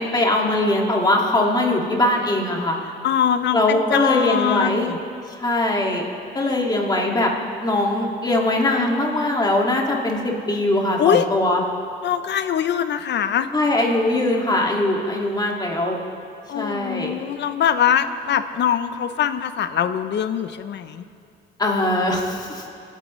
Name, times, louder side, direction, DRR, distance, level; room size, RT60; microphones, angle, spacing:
voice 1, 0.0-2.8 3.5-4.9 5.4-6.0 6.3-7.3 7.6-11.6 13.5-16.0 16.5-17.1 21.6-22.7, left 1 dB, 20° left, -1 dB, 2.0 m, -21 dB
voice 2, 3.0-5.0 11.0-11.3 12.0-13.5 16.5-21.0, left 9 dB, 60° left, 11 dB, 0.6 m, -22 dB
27.0 x 9.1 x 3.1 m, 2.4 s
cardioid pair, 90°, 20 cm